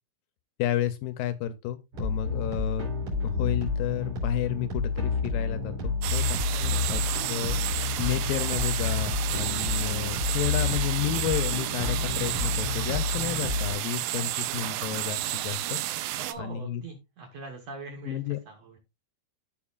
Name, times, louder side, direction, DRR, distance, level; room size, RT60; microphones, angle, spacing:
voice 1, 0.6-2.9 3.2-6.4 6.9-7.0 7.3-7.6 8.0-16.8 18.1-18.4, left 11 dB, 80° left, 2.1 m, -31 dB
sound 1, 1.9-13.7, left 4 dB, 45° right, 5.2 m, -30 dB
sound 2, 6.0-16.3, right 15 dB, 80° right, 2.2 m, -31 dB
voice 2, 6.5-7.2 16.1-18.8, right 3 dB, 65° right, 1.7 m, -42 dB
14.5 x 4.9 x 2.4 m
omnidirectional pair, 4.4 m